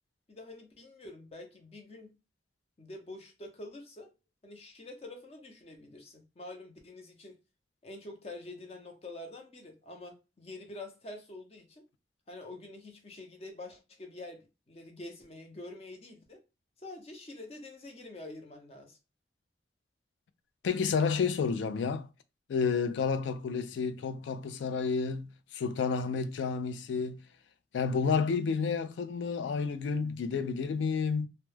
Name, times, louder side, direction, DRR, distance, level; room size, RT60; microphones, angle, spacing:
voice 1, 0.3-2.1 2.8-4.1 4.4-7.4 7.8-11.8 12.3-16.4 16.8-19.0, left 2 dB, 35° left, 0.5 m, -46 dB
voice 2, 20.6-22.1 22.5-27.2 27.7-31.3, left 5 dB, 90° left, 0.3 m, -30 dB
2.2 x 2.0 x 3.1 m
head